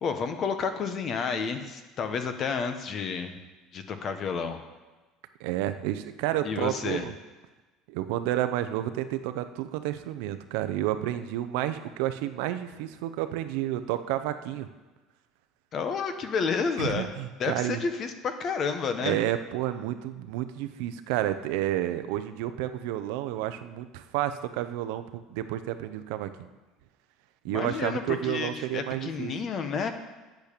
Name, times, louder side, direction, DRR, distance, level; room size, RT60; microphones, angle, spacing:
voice 1, 0.0-3.4 3.7-4.6 6.4-7.0 15.7-17.1 17.4-19.2 27.5-29.9, left 5 dB, 35° left, 8 dB, 1.1 m, -30 dB
voice 2, 5.4-7.1 7.9-14.7 16.8-17.8 19.0-26.5 27.4-29.3, right 13 dB, 75° right, 10 dB, 0.8 m, -30 dB
8.8 x 8.3 x 6.8 m, 1.2 s
cardioid pair, 145°, 0 cm